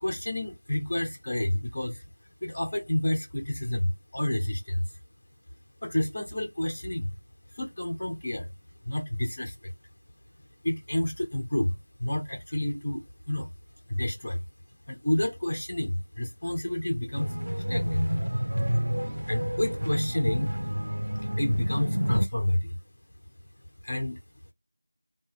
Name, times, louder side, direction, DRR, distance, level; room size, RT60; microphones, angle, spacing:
voice 1, 0.0-2.0 2.4-4.9 5.8-7.2 7.5-8.5 8.9-9.7 10.6-11.7 12.0-13.5 13.9-14.4 14.9-17.3 17.7-18.1 19.3-20.5 21.3-22.8 23.8-24.2, left 1 dB, 15° left, 0.3 m, -29 dB
sound 1, 17.1-22.3, equal, 55° right, 0.5 m, -29 dB
3.6 x 2.4 x 3.9 m
figure-of-eight pair, 180°, 0 cm